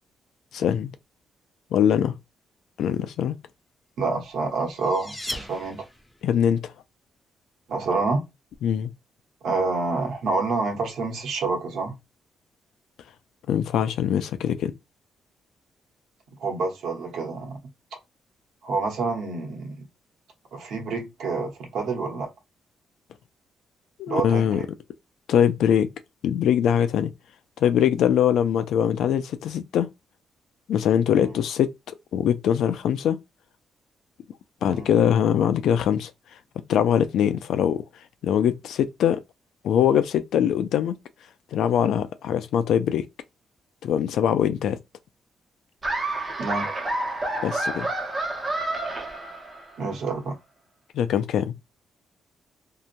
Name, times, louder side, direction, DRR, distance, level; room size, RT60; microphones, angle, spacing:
voice 1, 0.5-0.9 1.7-2.1 2.8-3.4 6.2-6.7 8.6-8.9 13.5-14.7 24.0-24.6 25.3-25.9 26.2-27.1 27.6-29.9 30.7-33.2 34.6-36.1 36.7-37.8 38.2-39.2 39.6-41.0 41.5-43.1 43.8-44.8 47.4-47.9 50.9-51.5, left 9 dB, 85° left, 0.4 m, -22 dB
voice 2, 4.0-5.8 7.7-8.2 9.4-12.0 16.4-17.6 18.6-19.9 20.5-22.3 24.1-24.7 31.1-31.3 34.6-34.9 46.4-46.7 49.8-50.4, right 3 dB, 75° right, 1.0 m, -28 dB
sound 1, 4.2-6.3, left 1 dB, 10° left, 0.4 m, -37 dB
Laughter, 45.8-49.8, right 2 dB, 20° right, 0.7 m, -29 dB
2.9 x 2.1 x 2.5 m
cardioid pair, 145°, 0 cm